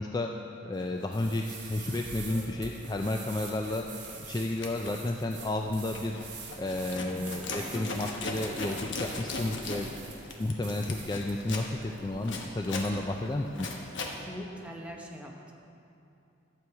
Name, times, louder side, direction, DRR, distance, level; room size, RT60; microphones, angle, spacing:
voice 1, 0.0-6.2 6.6-9.9 10.4-13.7, left 2 dB, 20° left, 2 dB, 0.3 m, -32 dB
Zipper (clothing), 1.0-1.2 1.7-3.1 3.4-3.7 4.0-14.2, left 2 dB, 65° left, 1.0 m, -39 dB
sound 1, 1.1-12.3, right 4 dB, 60° right, 1.3 m, -46 dB
voice 2, 7.5-7.9 14.2-15.5, equal, 5° right, -1 dB, 0.9 m, -42 dB
11.5 x 7.7 x 4.6 m, 2.7 s
head